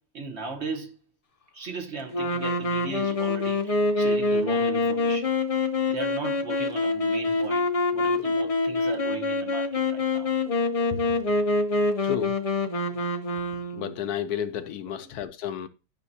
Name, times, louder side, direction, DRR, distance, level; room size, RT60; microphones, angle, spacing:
voice 1, 0.1-1.0 1.5-5.3 5.9-10.3, right 4 dB, 45° right, 1.2 m, -37 dB
sound 1, 2.1-14.0, left 3 dB, 50° left, 0.4 m, -25 dB
voice 2, 12.0-12.4 13.8-15.7, left 9 dB, 75° left, 1.1 m, -31 dB
12.0 x 5.9 x 2.7 m
omnidirectional pair, 1.7 m